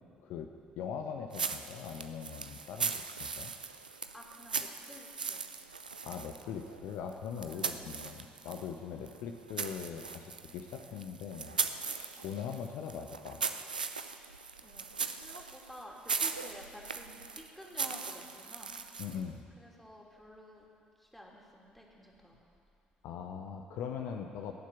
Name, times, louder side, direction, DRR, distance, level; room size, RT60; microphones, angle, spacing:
voice 1, 0.8-3.5 6.0-13.4 19.0-19.4 23.0-24.5, left 7 dB, 60° left, 4 dB, 0.8 m, -41 dB
sound 1, 1.3-8.7 9.0-19.3, right 5 dB, 85° right, 0.4 m, -39 dB
voice 2, 4.1-5.6 7.5-7.9 12.2-12.3 14.6-18.7 19.1-19.2 19.6-20.7 21.0-22.4 24.1-24.3, equal, 5° left, -2 dB, 3.0 m, -52 dB
17.0 x 7.4 x 8.5 m, 2.4 s
figure-of-eight pair, 45°, 5 cm